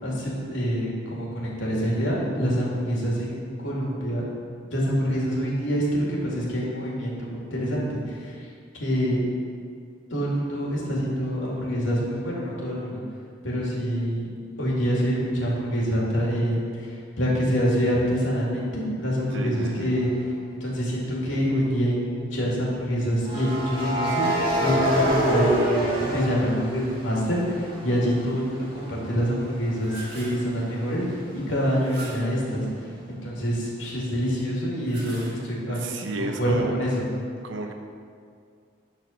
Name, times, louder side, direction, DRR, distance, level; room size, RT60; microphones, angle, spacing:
voice 1, 0.0-4.2 4.7-8.3 8.7-9.2 10.1-13.0 13.4-14.2 14.6-20.1 20.6-24.3 24.6-31.2 31.5-32.6 33.1-35.8 36.2-37.1, equal, 85° left, -4 dB, 2.5 m, -26 dB
voice 2, 19.3-20.0 35.7-36.7 37.4-37.7, right 2 dB, 80° right, 4 dB, 0.9 m, -32 dB
sound 1, 19.9-20.2 23.2-27.1 27.5-31.1, right 1 dB, 25° right, 1.6 m, -27 dB
sound 2, 29.7-30.5 31.8-32.4 34.7-35.7, right 2 dB, 55° right, 1.9 m, -42 dB
10.5 x 4.3 x 6.5 m, 2.2 s
head